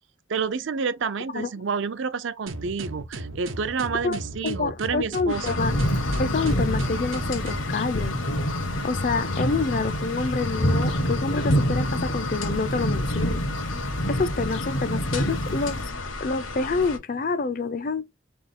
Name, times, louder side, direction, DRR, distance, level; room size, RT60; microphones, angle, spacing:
voice 1, 0.3-5.5, right 5 dB, 70° right, 0.5 m, -29 dB
sound 1, 2.5-7.7, right 2 dB, 85° right, 0.9 m, -36 dB
voice 2, 4.4-5.8 6.2-8.1 8.8-13.4 14.1-15.8 16.2-18.0, left 4 dB, 40° left, 0.4 m, -27 dB
sound 2, 5.3-17.0, left 3 dB, 90° left, 1.2 m, -33 dB
sound 3, 5.6-15.9, equal, 70° left, 1.0 m, -27 dB
3.5 x 3.4 x 4.2 m
head